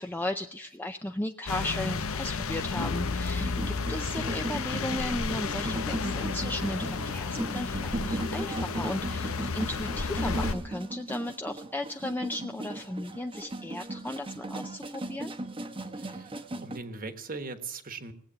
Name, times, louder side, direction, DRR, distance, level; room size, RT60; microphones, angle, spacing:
voice 1, 0.0-15.3, left 1 dB, 10° left, 5 dB, 0.5 m, -35 dB
sound 1, 1.5-10.6, left 4 dB, 80° left, 0.9 m, -32 dB
sound 2, 3.4-16.8, right 1 dB, 25° right, 1.0 m, -37 dB
voice 2, 15.9-18.1, right 3 dB, 45° right, 9 dB, 1.4 m, -40 dB
19.0 x 8.2 x 8.7 m, 0.66 s
head